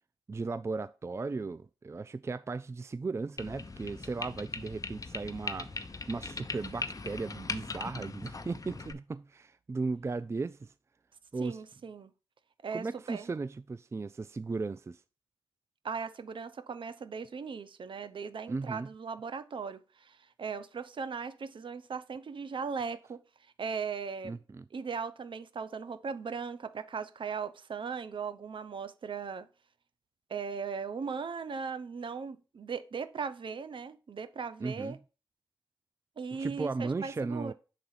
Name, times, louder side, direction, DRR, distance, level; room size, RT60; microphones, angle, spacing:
voice 1, 0.3-5.7 6.1-10.7 11.3-11.6 12.7-15.0 18.5-18.9 24.2-24.6 34.6-35.0 36.4-37.5, right 3 dB, 30° right, 0.3 m, -36 dB
sound 1, 3.4-8.9, left 3 dB, 40° left, 0.8 m, -40 dB
voice 2, 11.4-12.1 12.6-13.3 15.8-23.2 23.6-24.4 24.7-29.5 30.3-35.0 36.2-37.5, right 5 dB, 60° right, 0.7 m, -38 dB
5.8 x 3.8 x 5.5 m
supercardioid pair, 40°, 9 cm